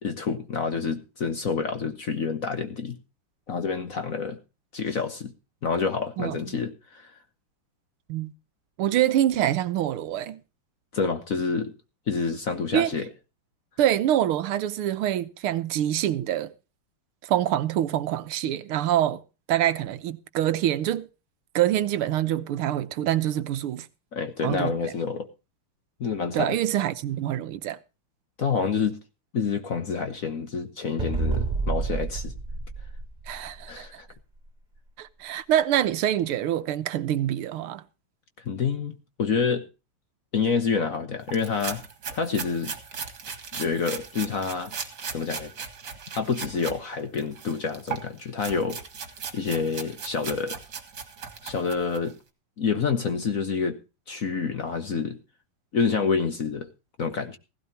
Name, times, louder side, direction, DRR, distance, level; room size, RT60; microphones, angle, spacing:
voice 1, 0.0-3.0 3.5-4.4 4.7-5.3 5.6-7.1 10.9-11.7 12.1-13.1 24.1-25.3 26.0-26.6 28.4-29.0 29.3-32.3 33.7-34.1 38.5-39.6 40.3-41.8 42.1-42.7 43.5-44.7 45.1-45.5 46.2-48.8 49.3-50.6 51.4-52.1 52.6-53.8 54.1-55.2 55.7-56.7 57.0-57.4, left 5 dB, 50° left, 1.2 m, -28 dB
voice 2, 8.8-10.4 12.7-12.9 13.8-16.5 17.2-19.2 19.5-21.1 21.6-23.9 24.4-24.7 26.3-27.8 33.3-33.9 35.0-37.8, right 12 dB, 80° right, 1.7 m, -25 dB
sound 1, 31.0-33.7, right 4 dB, 20° right, 3.3 m, -29 dB
sound 2, 41.3-46.8 47.1-52.1, right 6 dB, 50° right, 2.4 m, -38 dB
16.0 x 16.0 x 2.8 m
omnidirectional pair, 2.4 m